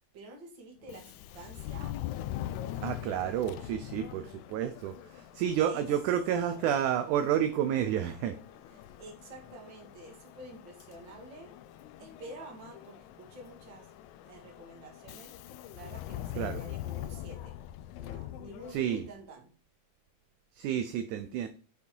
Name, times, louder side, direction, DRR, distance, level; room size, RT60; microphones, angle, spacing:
voice 1, 0.1-2.0 5.6-5.9 8.7-11.5 12.0-13.9 14.2-15.3 15.7-17.6 18.0-19.5, right 1 dB, 40° right, 1 dB, 2.2 m, -49 dB
Subway metro underground, 0.8-19.2, left 13 dB, 85° left, 1.7 m, -43 dB
voice 2, 2.8-8.4 16.4-16.6 18.7-19.1 20.6-21.5, right 10 dB, 75° right, 9 dB, 1.9 m, -30 dB
7.1 x 5.1 x 4.5 m, 0.37 s
omnidirectional pair, 3.9 m